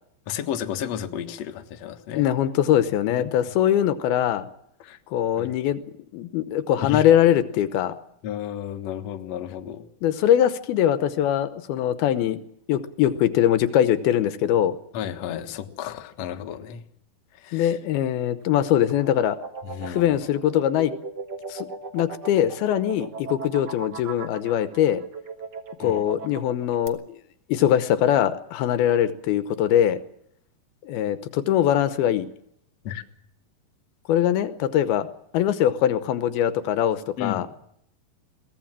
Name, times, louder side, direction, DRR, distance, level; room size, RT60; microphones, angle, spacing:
voice 1, 0.3-2.3 4.8-5.0 5.4-5.5 6.8-7.0 8.2-9.9 14.9-16.8 17.3-17.8 19.6-20.2 25.8-26.0 32.8-33.0 37.2-37.5, left 9 dB, 55° left, 6 dB, 2.2 m, -32 dB
voice 2, 2.1-4.5 5.1-5.8 6.1-8.0 10.0-12.4 12.7-14.7 17.5-19.4 19.8-20.9 21.5-21.7 21.9-25.0 25.8-27.0 27.5-30.0 30.9-32.3 34.1-35.1 35.3-37.5, left 11 dB, 80° left, 12 dB, 2.8 m, -22 dB
sound 1, 18.4-26.9, right 4 dB, 50° right, 1.2 m, -38 dB
22.5 x 18.0 x 7.5 m, 0.73 s
omnidirectional pair, 4.4 m